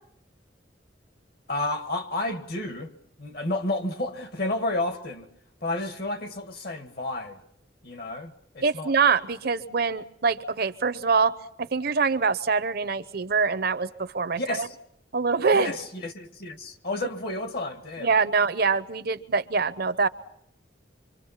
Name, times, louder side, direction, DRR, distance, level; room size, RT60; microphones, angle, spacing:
voice 1, 1.5-5.3 5.6-7.4 7.8-8.9 14.4-14.8 15.5-18.1, left 2 dB, 60° left, 1.7 m, -31 dB
voice 2, 8.6-14.7 15.1-15.7 18.0-20.1, right 5 dB, 60° right, 0.8 m, -24 dB
25.5 x 24.5 x 5.7 m
head